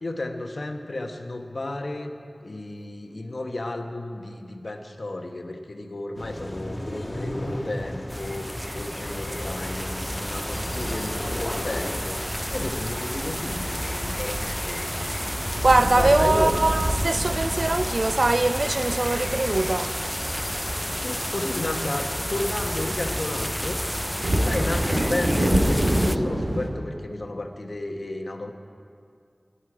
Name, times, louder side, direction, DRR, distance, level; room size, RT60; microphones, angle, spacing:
voice 1, 0.0-2.1 2.4-8.5 8.7-12.1 12.5-15.1 15.9-16.5 21.0-23.8 24.4-28.5, left 2 dB, 70° left, 1.1 m, -32 dB
sound 1, 6.2-12.0, left 1 dB, 35° left, 1.8 m, -35 dB
sound 2, 8.1-26.2, equal, 5° left, 0.4 m, -31 dB
sound 3, 10.2-26.7, right 1 dB, 75° right, 2.0 m, -30 dB
voice 2, 15.6-19.9, right 2 dB, 60° right, 0.5 m, -22 dB
20.5 x 11.5 x 4.9 m
wide cardioid pair, 55°, 0 cm